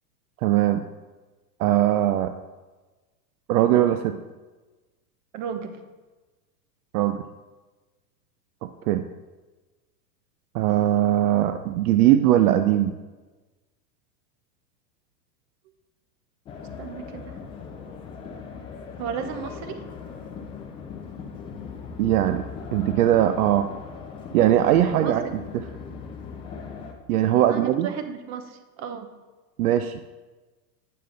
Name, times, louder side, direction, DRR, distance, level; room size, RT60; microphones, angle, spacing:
voice 1, 0.4-0.8 1.6-2.3 3.5-4.2 6.9-7.2 8.9-9.0 10.5-12.9 22.0-22.4 22.7-23.7 24.3-25.2 27.1-27.9 29.6-30.0, right 12 dB, 65° right, 9 dB, 0.6 m, -20 dB
voice 2, 5.3-5.8 16.8-17.4 19.0-19.8 25.0-25.1 27.3-29.1, right 7 dB, 35° right, 7 dB, 0.9 m, -34 dB
sound 1, 16.4-26.9, left 5 dB, 15° left, 0.3 m, -39 dB
8.7 x 6.7 x 3.9 m, 1.2 s
supercardioid pair, 135°, 49 cm